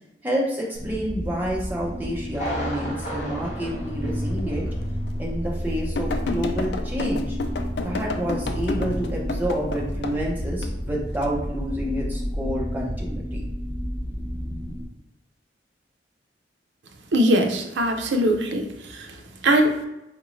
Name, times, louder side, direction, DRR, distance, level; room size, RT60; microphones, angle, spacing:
voice 1, 0.2-4.7 5.2-7.4 7.8-13.4, equal, 10° right, -3 dB, 0.7 m, -29 dB
sound 1, 0.7-14.8, equal, 10° left, 1.0 m, -31 dB
Thunder, 2.3-4.9 5.2-5.3 5.8-5.9, equal, 40° left, 0.8 m, -34 dB
sound 2, 4.4-4.5 5.1-5.2 6.0-10.2 10.6-11.3 11.9-12.2, left 3 dB, 70° left, 0.3 m, -30 dB
voice 2, 17.1-18.7 18.9-19.1 19.4-19.8, right 1 dB, 80° right, 5 dB, 0.5 m, -20 dB
3.9 x 2.5 x 3.1 m, 0.94 s
head